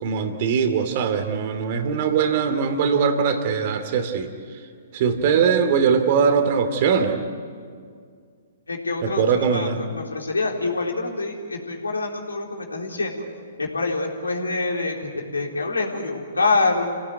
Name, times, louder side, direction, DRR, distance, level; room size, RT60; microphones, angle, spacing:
voice 1, 0.0-4.6 4.9-7.2 9.0-9.8, right 6 dB, 45° right, 8 dB, 2.6 m, -21 dB
voice 2, 8.7-13.3 13.6-16.8, left 3 dB, 85° left, 1 dB, 3.9 m, -26 dB
28.5 x 17.5 x 9.3 m, 2.2 s
figure-of-eight pair, 120°, 0 cm